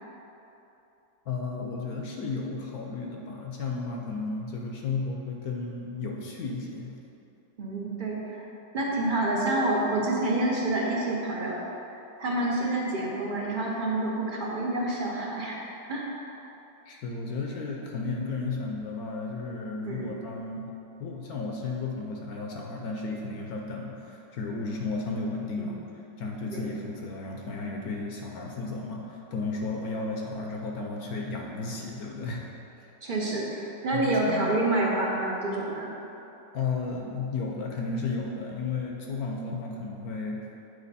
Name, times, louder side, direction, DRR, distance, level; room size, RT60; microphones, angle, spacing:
voice 1, 1.3-7.0 16.9-20.7 21.0-25.8 26.2-32.4 32.8-32.9 33.9-34.6 36.5-40.4, left 3 dB, 65° left, 0 dB, 1.1 m, -33 dB
voice 2, 7.6-8.5 8.7-11.6 12.2-15.6 15.9-16.1 19.9-20.1 25.6-25.7 26.5-26.7 33.0-35.9, right 2 dB, 40° right, -3 dB, 0.7 m, -28 dB
8.3 x 4.7 x 4.1 m, 3.0 s
omnidirectional pair, 2.0 m